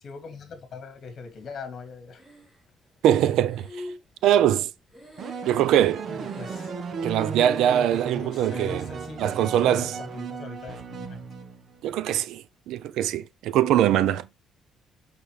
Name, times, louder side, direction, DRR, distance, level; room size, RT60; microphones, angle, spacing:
voice 1, 0.0-2.2 6.4-6.7 8.1-11.2, left 5 dB, 50° left, 2.4 m, -41 dB
Breathing, 2.1-2.9 3.4-5.9 6.2-7.0 7.4-8.0 8.2-8.9 9.5-10.0, left 1 dB, 5° right, 3.4 m, -44 dB
voice 2, 3.0-3.9 4.2-4.7 5.5-6.1 7.0-8.9 9.2-10.0 11.8-14.3, right 11 dB, 85° right, 0.6 m, -22 dB
sound 1, 5.2-11.8, right 5 dB, 50° right, 1.2 m, -35 dB
6.8 x 5.9 x 3.3 m
cardioid pair, 130°, 0 cm